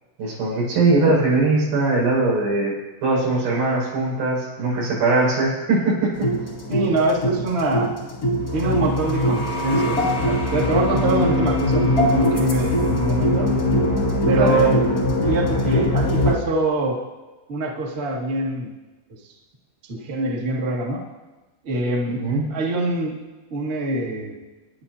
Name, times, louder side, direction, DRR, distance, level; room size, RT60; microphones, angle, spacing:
voice 1, 0.2-2.8 3.0-6.3 14.4-14.6 22.1-22.4, right 3 dB, 55° right, -5 dB, 7.5 m, -20 dB
sound 1, 6.1-16.3, left 1 dB, 35° left, 1.5 m, -21 dB
voice 2, 6.7-7.9 8.5-13.5 14.2-14.8 15.2-17.0 17.5-18.7 19.9-21.0 21.6-22.2 22.5-23.2 23.5-24.4, right 2 dB, 75° right, -4 dB, 0.5 m, -24 dB
28.0 x 10.5 x 2.8 m, 1.2 s
omnidirectional pair, 5.2 m